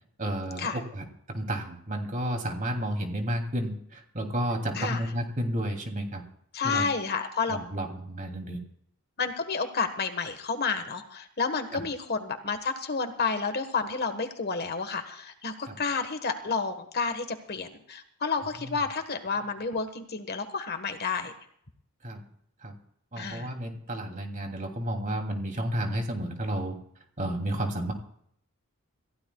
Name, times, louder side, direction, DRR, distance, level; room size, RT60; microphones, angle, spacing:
voice 1, 0.2-6.2 6.6-6.8 7.5-8.6 11.7-11.8 15.7-15.8 18.6-18.7 22.0-22.2 22.6-22.7 23.1-26.8 27.2-27.9, right 1 dB, 35° right, 3 dB, 2.9 m, -31 dB
voice 2, 6.5-7.6 9.2-21.3 23.2-23.5, left 4 dB, 45° left, 8 dB, 1.4 m, -30 dB
27.5 x 15.5 x 2.3 m, 0.67 s
head